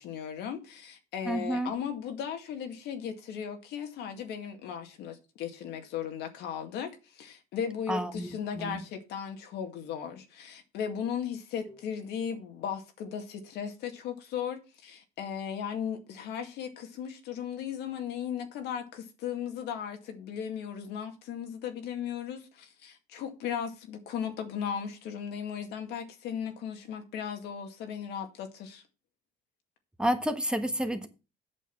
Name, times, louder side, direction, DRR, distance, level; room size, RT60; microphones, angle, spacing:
voice 1, 0.0-28.8, left 8 dB, 80° left, 2.1 m, -36 dB
voice 2, 1.3-1.7 7.9-8.8 11.7-11.8 30.0-31.1, right 1 dB, 5° right, 1.4 m, -30 dB
8.5 x 6.5 x 6.1 m
cardioid pair, 110°, 17 cm